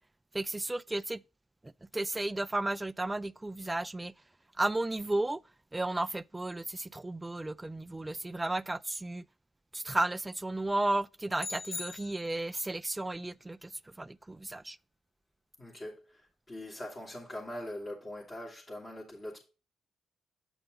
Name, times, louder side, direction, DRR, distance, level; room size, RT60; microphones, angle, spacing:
voice 1, 0.3-1.2 1.6-4.1 4.6-5.4 5.7-9.3 9.7-13.7 14.0-14.8, right 2 dB, 15° right, 0.3 m, -33 dB
sound 1, 11.4-12.7, left 4 dB, 50° left, 1.0 m, -41 dB
voice 2, 15.6-19.4, left 1 dB, 30° left, 2.9 m, -42 dB
8.0 x 5.5 x 3.8 m
cardioid pair, 90°, 0 cm